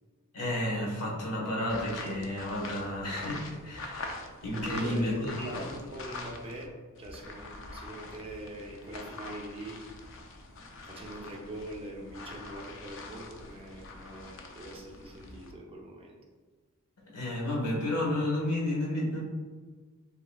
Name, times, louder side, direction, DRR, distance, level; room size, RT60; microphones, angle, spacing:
voice 1, 0.3-5.7 17.1-19.2, left 1 dB, 75° left, -2 dB, 1.3 m, -32 dB
sound 1, 1.6-6.7 6.9-15.5, left 3 dB, 60° left, 0.6 m, -44 dB
voice 2, 4.5-6.7 7.0-9.8 10.9-16.2, right 1 dB, 25° right, -1 dB, 0.6 m, -43 dB
7.2 x 2.8 x 2.3 m, 1.4 s
head